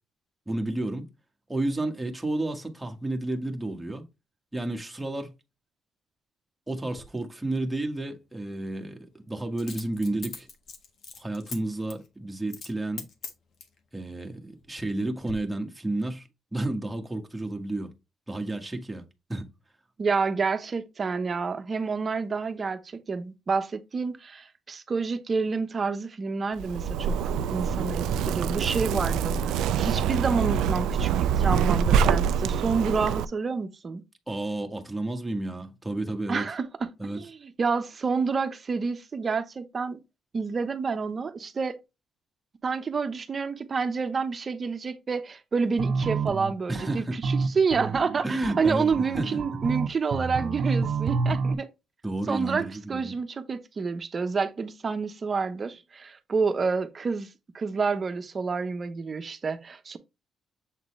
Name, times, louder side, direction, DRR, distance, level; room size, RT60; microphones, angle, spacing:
voice 1, 0.5-1.1 1.5-4.0 4.5-5.3 6.7-10.5 11.2-13.1 13.9-17.9 18.3-19.0 19.3-19.5 34.3-36.5 37.0-37.2 46.7-47.2 48.2-49.4 52.0-53.1, right 2 dB, 10° right, 1.5 m, -31 dB
Coin (dropping), 6.9-7.1 9.6-11.6 11.9-12.1 12.5-12.7 13.0-13.8 14.4-15.0 15.3-15.4, left 5 dB, 60° left, 1.5 m, -41 dB
voice 2, 20.0-34.0 36.3-40.0 40.3-41.8 42.6-51.7 52.3-57.3 57.5-60.0, right 5 dB, 40° right, 1.0 m, -29 dB
Zipper (clothing), 26.6-33.2, right 7 dB, 85° right, 0.4 m, -25 dB
sound 1, 45.8-51.5, right 4 dB, 65° right, 0.8 m, -29 dB
7.5 x 3.9 x 3.3 m
cardioid pair, 90°, 0 cm